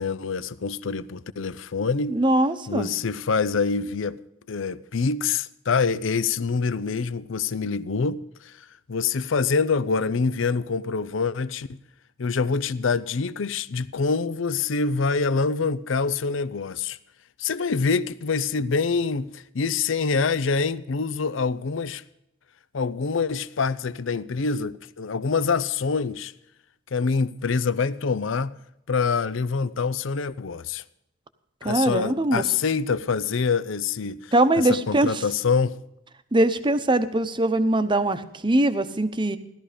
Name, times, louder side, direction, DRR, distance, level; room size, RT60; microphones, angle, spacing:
voice 1, 0.0-2.2 2.7-4.2 4.5-11.8 12.2-17.0 17.4-22.0 22.7-26.3 26.9-28.5 28.9-30.8 31.6-35.8, left 5 dB, 70° left, 0.6 m, -25 dB
voice 2, 2.1-2.9 31.6-32.4 34.3-35.2 36.3-39.4, right 1 dB, 25° right, 0.9 m, -22 dB
16.5 x 12.5 x 5.1 m
head